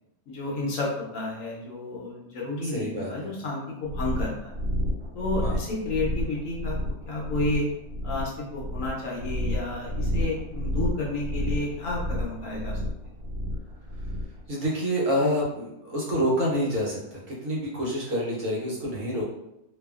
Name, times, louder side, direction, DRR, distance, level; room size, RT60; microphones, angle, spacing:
voice 1, 0.3-4.5 5.1-6.8 7.1-7.7 8.0-12.8, left 2 dB, 65° left, -3 dB, 1.0 m, -31 dB
voice 2, 2.6-3.3 5.4-5.6 14.5-19.2, equal, 60° right, -5 dB, 1.2 m, -27 dB
sound 1, 3.9-14.4, equal, 90° right, 1.3 m, -30 dB
2.8 x 2.3 x 2.3 m, 0.85 s
omnidirectional pair, 1.6 m